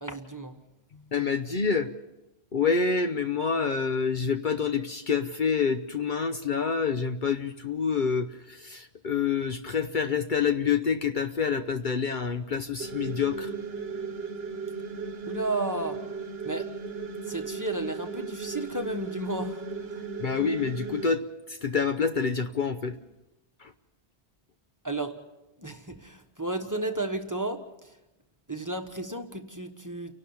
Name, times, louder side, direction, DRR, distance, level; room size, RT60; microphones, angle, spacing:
voice 1, 0.0-0.6 15.2-16.0 16.4-16.7 17.3-19.6 24.8-25.2 25.6-27.9 28.5-30.1, right 2 dB, 15° right, 5 dB, 1.3 m, -33 dB
voice 2, 1.1-1.9 2.5-13.5 20.2-21.2 21.6-23.0 23.6-23.7, left 5 dB, 50° left, 7 dB, 0.9 m, -27 dB
sound 1, 12.8-21.0, right 5 dB, 65° right, 1.2 m, -36 dB
30.0 x 12.0 x 7.2 m, 0.99 s
omnidirectional pair, 1.1 m